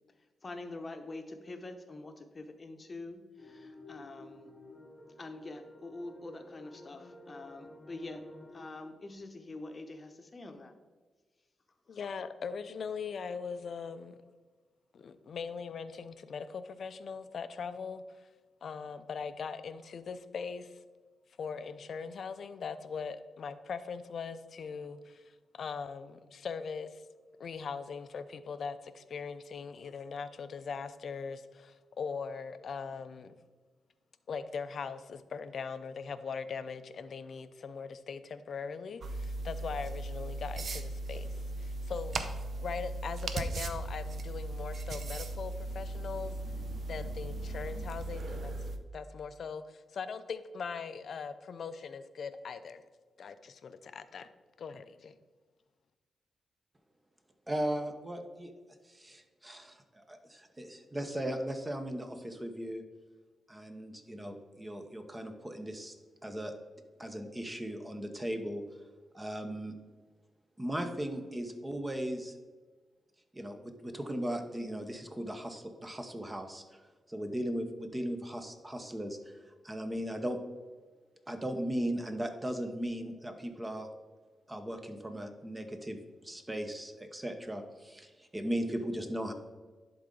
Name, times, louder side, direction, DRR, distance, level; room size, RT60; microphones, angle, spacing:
voice 1, 0.4-4.5 5.2-8.2 8.5-10.7, left 2 dB, 35° left, 6 dB, 0.8 m, -45 dB
sound 1, 3.4-8.7, left 1 dB, 5° left, 1.3 m, -52 dB
voice 2, 11.9-14.2 14.9-18.3 18.6-20.8 21.4-27.0 27.4-33.4 34.3-42.2 42.6-46.4 46.9-48.5 48.9-52.8 53.2-54.3 54.6-55.2, left 5 dB, 60° left, 12 dB, 0.4 m, -40 dB
sound 2, 39.0-48.8, right 2 dB, 60° right, 0.6 m, -37 dB
voice 3, 57.5-58.5 58.8-62.8 63.5-65.9 66.2-66.5 67.0-68.6 69.1-69.8 70.6-72.3 73.3-76.8 77.1-80.4 81.3-83.9 84.5-89.3, right 1 dB, 15° right, 6 dB, 0.8 m, -37 dB
11.0 x 3.8 x 3.8 m, 1.3 s
cardioid pair, 90°, 0 cm